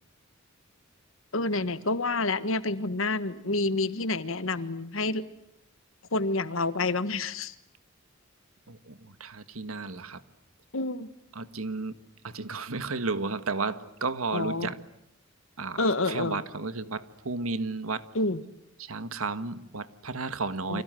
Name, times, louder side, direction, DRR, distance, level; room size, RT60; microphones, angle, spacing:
voice 1, 1.3-5.2 6.1-7.5 10.7-11.1 14.3-14.7 15.8-16.4 18.1-18.4 20.7-20.8, left 2 dB, 65° left, 13 dB, 1.5 m, -28 dB
voice 2, 8.7-10.2 11.3-12.0 12.2-14.8 15.6-18.1 18.8-20.8, right 3 dB, 80° right, 12 dB, 1.6 m, -33 dB
30.0 x 26.0 x 7.8 m, 0.76 s
head